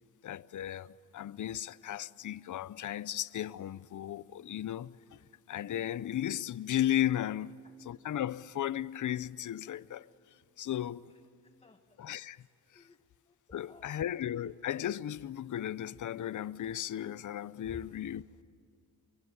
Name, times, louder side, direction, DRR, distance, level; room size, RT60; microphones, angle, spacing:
voice 1, 0.2-7.5 7.8-11.1 12.0-12.5 12.7-12.9 13.5-18.2, left 11 dB, 50° left, 0.6 m, -35 dB
voice 2, 11.4-12.1 12.7-13.0 13.3-14.1 17.6-18.0, left 3 dB, 15° left, 1.2 m, -55 dB
26.0 x 23.5 x 9.7 m
cardioid pair, 100°, 40 cm